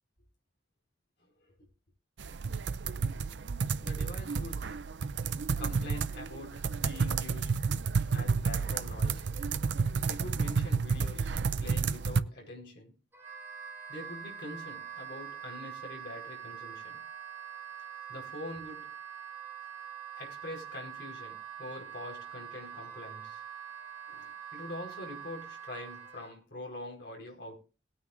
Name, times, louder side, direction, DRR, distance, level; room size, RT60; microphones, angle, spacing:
voice 1, 1.2-1.7 3.8-4.9 5.6-7.6 8.1-9.3 10.1-13.0 13.9-17.1 18.1-18.9 20.2-23.4 24.1-27.6, left 1 dB, 60° left, 4.8 m, -44 dB
sound 1, 2.2-12.2, right 5 dB, 70° right, 0.6 m, -31 dB
Wind instrument woodwind instrument, 13.1-26.3, right 8 dB, 15° right, 3.7 m, -44 dB
20.0 x 9.4 x 2.6 m
head